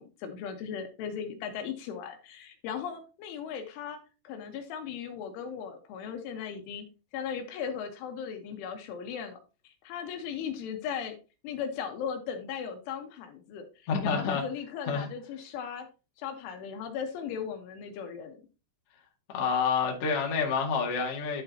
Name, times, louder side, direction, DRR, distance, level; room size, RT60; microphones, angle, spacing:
voice 1, 0.0-6.9 7.1-9.4 9.6-11.2 11.4-15.9 16.2-18.4, left 7 dB, 75° left, 3.3 m, -37 dB
voice 2, 13.9-14.5 14.9-15.1 19.3-21.4, left 5 dB, 50° left, 1.8 m, -28 dB
11.5 x 6.5 x 2.8 m
omnidirectional pair, 5.9 m